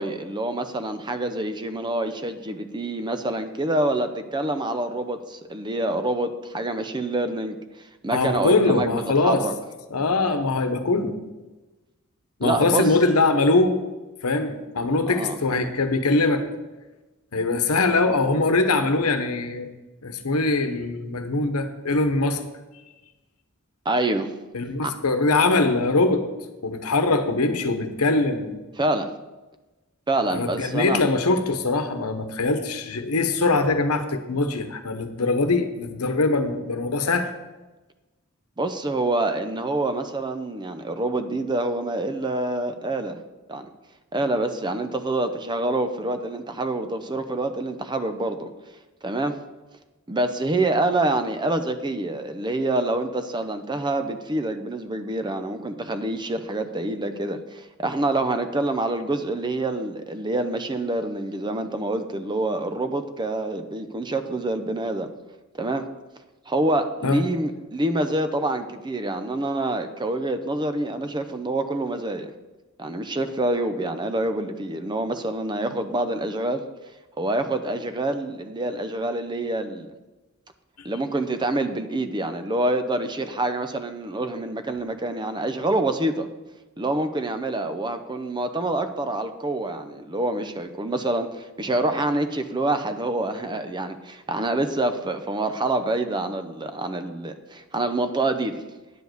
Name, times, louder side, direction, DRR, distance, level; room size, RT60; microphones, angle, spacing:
voice 1, 0.0-7.6 8.0-9.5 12.4-12.9 15.1-15.4 23.9-24.3 24.8-24.9 28.8-29.1 30.1-31.0 38.6-43.2 43.5-43.7 44.1-48.5 49.0-49.4 50.1-65.1 65.5-65.9 66.5-72.3 72.8-76.6 77.2-79.9 80.8-86.3 86.8-98.6, right 2 dB, 20° right, 9 dB, 0.6 m, -26 dB
voice 2, 8.1-9.4 9.9-11.1 12.4-13.8 14.2-16.4 17.3-19.7 20.0-22.4 24.5-26.2 26.6-28.6 30.3-37.3 67.0-67.2, left 3 dB, 85° left, 9 dB, 1.0 m, -22 dB
9.6 x 5.1 x 7.8 m, 1.1 s
head